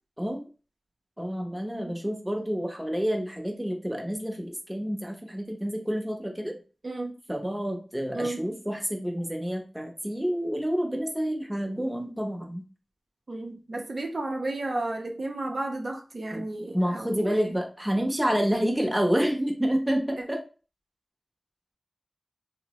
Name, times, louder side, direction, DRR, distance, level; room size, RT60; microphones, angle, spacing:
voice 1, 1.2-6.6 7.3-12.6 16.3-16.4 16.7-20.4, equal, 10° right, 2 dB, 0.7 m, -28 dB
voice 2, 13.3-17.6, right 2 dB, 60° right, 2 dB, 0.5 m, -33 dB
2.8 x 2.0 x 2.9 m, 0.35 s
cardioid pair, 45°, 0 cm